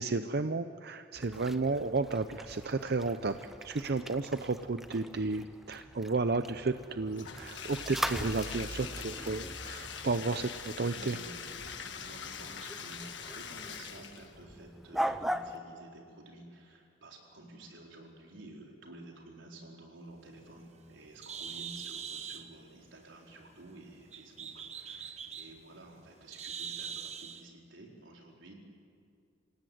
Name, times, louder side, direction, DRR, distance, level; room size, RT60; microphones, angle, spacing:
voice 1, 0.0-11.2, right 3 dB, 55° right, 10 dB, 0.6 m, -33 dB
sound 1, 1.1-15.6, equal, ahead, 0.7 m, -41 dB
Bathtub (filling or washing), 7.1-14.4, left 7 dB, 70° left, 1.6 m, -43 dB
voice 2, 10.9-28.5, right 2 dB, 90° right, 0 dB, 4.6 m, -52 dB
Bird, 20.2-27.4, right 7 dB, 35° right, 1.1 m, -44 dB
27.0 x 17.0 x 9.4 m, 2.3 s
head